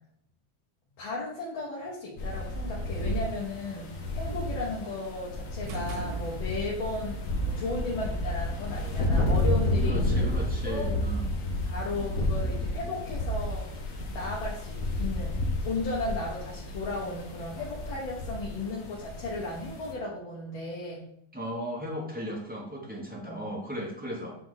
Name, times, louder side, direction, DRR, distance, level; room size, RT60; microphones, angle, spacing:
voice 1, 1.0-10.3 10.7-10.9 11.7-13.7 14.1-21.1 23.3-23.4, left 2 dB, 80° left, -4 dB, 1.9 m, -35 dB
sound 1, 2.2-19.9, left 1 dB, 50° left, 1.1 m, -31 dB
sound 2, 5.7-6.9, right 3 dB, 80° right, 1.4 m, -37 dB
voice 2, 9.8-11.3 12.0-12.1 21.3-24.4, equal, 10° right, -3 dB, 0.6 m, -36 dB
8.4 x 3.0 x 3.8 m, 0.72 s
omnidirectional pair, 2.2 m